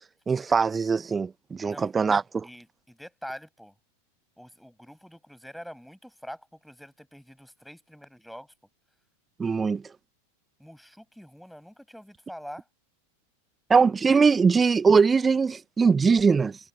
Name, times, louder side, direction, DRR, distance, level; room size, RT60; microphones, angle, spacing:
voice 1, 0.3-2.5 9.4-9.8 13.7-16.6, right 5 dB, 15° right, 1.4 m, -21 dB
voice 2, 2.4-3.7 4.4-8.5 10.6-12.6, equal, ahead, 6.9 m, -45 dB
figure-of-eight pair, 90°, 0 cm